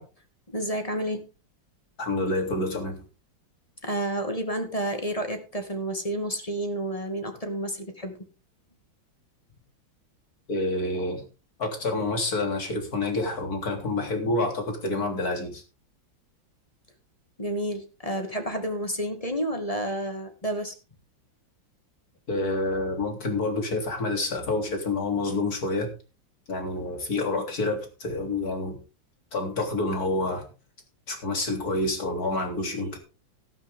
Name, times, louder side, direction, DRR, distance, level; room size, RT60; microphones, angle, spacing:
voice 1, 0.5-1.3 3.8-8.2 17.4-20.7 32.6-33.0, right 1 dB, 20° left, 6 dB, 2.2 m, -30 dB
voice 2, 2.0-3.0 10.5-11.2 11.6-15.6 22.3-25.9 26.5-28.8 29.3-30.4 31.1-33.0, left 2 dB, 50° left, 4 dB, 3.8 m, -28 dB
14.0 x 12.0 x 3.7 m, 0.31 s
omnidirectional pair, 2.1 m